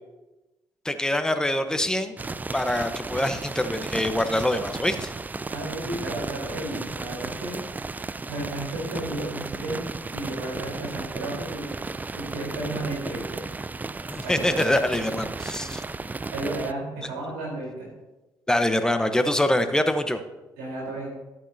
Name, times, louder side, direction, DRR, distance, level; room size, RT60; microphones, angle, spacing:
voice 1, 0.8-2.1 2.5-5.1 14.1-15.8 18.5-20.2, left 1 dB, 5° left, 8 dB, 1.0 m, -24 dB
sound 1, 2.2-16.7, right 3 dB, 20° right, 0.4 m, -34 dB
voice 2, 5.5-7.6 8.3-11.7 12.1-13.5 14.2-14.6 16.3-17.9 20.6-21.1, right 2 dB, 85° right, -3 dB, 3.8 m, -33 dB
13.0 x 8.7 x 2.7 m, 1.1 s
hypercardioid pair, 55°, 9 cm